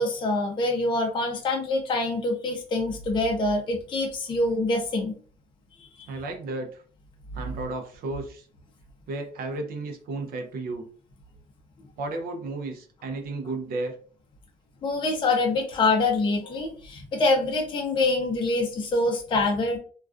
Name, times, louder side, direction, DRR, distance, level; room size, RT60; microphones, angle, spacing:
voice 1, 0.0-5.1 6.0-6.1 14.8-19.8, left 2 dB, 30° left, 1 dB, 0.5 m, -25 dB
voice 2, 6.1-6.8 7.3-8.5 9.1-10.9 12.0-14.0, right 2 dB, 60° right, 4 dB, 0.5 m, -33 dB
2.3 x 2.3 x 2.4 m, 0.44 s
cardioid pair, 110°, 17 cm